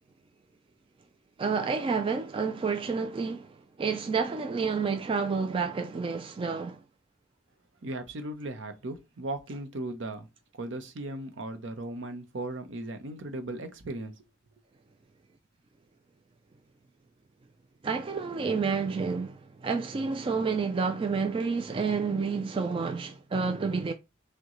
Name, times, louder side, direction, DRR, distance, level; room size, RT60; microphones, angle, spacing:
voice 1, 1.4-6.8 17.8-23.9, right 5 dB, 30° right, 0.3 m, -29 dB
voice 2, 7.8-10.3 10.6-14.1, right 2 dB, 70° right, 0.7 m, -37 dB
6.2 x 2.2 x 3.0 m
head